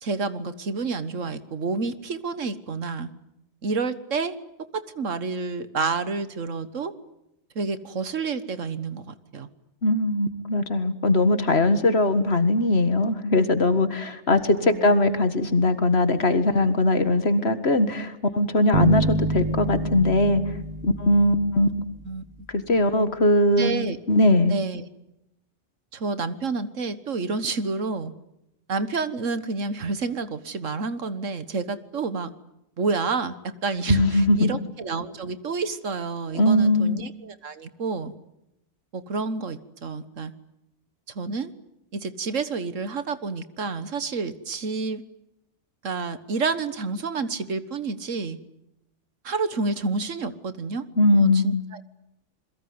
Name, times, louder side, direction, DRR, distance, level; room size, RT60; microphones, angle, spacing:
voice 1, 0.0-3.1 3.6-4.3 4.7-6.9 7.5-9.5 14.3-14.9 22.0-22.5 23.6-24.0 24.5-24.8 25.9-28.1 28.7-32.3 32.8-33.3 33.6-38.1 38.9-40.3 41.1-41.5 41.9-45.0 45.8-48.4 49.2-50.8 51.1-51.8, right 4 dB, 75° right, 13 dB, 1.8 m, -29 dB
voice 2, 9.8-20.4 20.8-21.7 22.5-23.7 24.1-24.6 33.9-34.5 36.3-37.0 51.0-51.6, left 1 dB, 55° left, 11 dB, 2.0 m, -20 dB
sound 1, 18.7-22.1, right 2 dB, 30° right, 1.8 m, -27 dB
28.0 x 22.0 x 9.6 m, 0.84 s
omnidirectional pair, 1.3 m